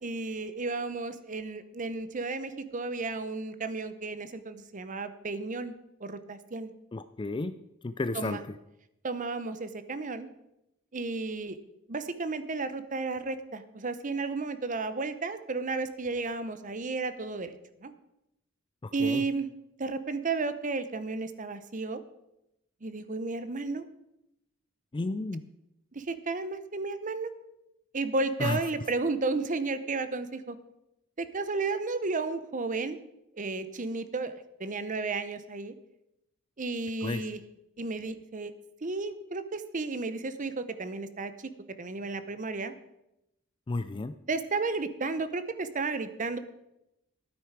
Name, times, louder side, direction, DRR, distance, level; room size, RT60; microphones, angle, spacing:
voice 1, 0.0-5.7 6.0-6.7 8.1-8.4 9.0-10.3 10.9-11.6 11.9-17.6 17.8-17.9 18.9-19.5 19.8-22.0 22.8-23.9 25.9-27.3 27.9-30.6 31.2-33.0 33.3-34.3 34.6-35.7 36.6-37.4 37.8-38.5 38.8-41.5 41.8-42.8 44.3-46.4, right 3 dB, 40° right, 12 dB, 0.8 m, -33 dB
voice 2, 6.9-7.5 7.8-8.4 19.0-19.2 24.9-25.4 28.4-28.6 37.0-37.2 43.7-44.1, left 2 dB, 25° left, 12 dB, 0.4 m, -31 dB
12.5 x 9.3 x 4.7 m, 0.87 s
head